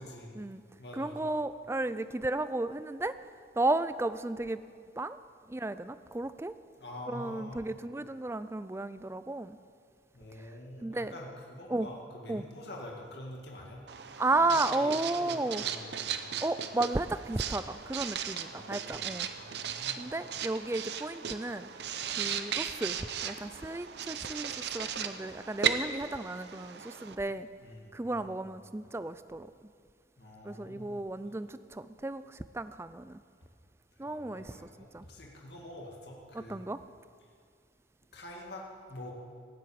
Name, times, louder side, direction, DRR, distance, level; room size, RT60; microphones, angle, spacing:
voice 1, 0.0-0.4 0.8-1.3 6.8-7.7 10.1-13.8 14.3-16.2 18.5-19.1 19.4-20.1 27.6-28.4 30.2-31.0 34.0-36.6 38.1-39.1, left 1 dB, 60° left, -1 dB, 2.1 m, -46 dB
voice 2, 0.9-3.2 3.6-4.6 5.0-5.2 5.5-6.5 7.1-9.6 10.4-10.5 10.8-11.1 11.7-11.9 12.3-12.4 14.2-15.6 16.4-19.3 20.0-21.7 22.2-27.5 27.9-29.5 30.4-33.2 34.0-34.6 34.9-35.1 36.3-36.8, right 2 dB, 15° right, 13 dB, 0.4 m, -33 dB
Writing, 13.9-27.2, right 8 dB, 65° right, 0.7 m, -36 dB
16.5 x 8.0 x 8.8 m, 2.1 s
head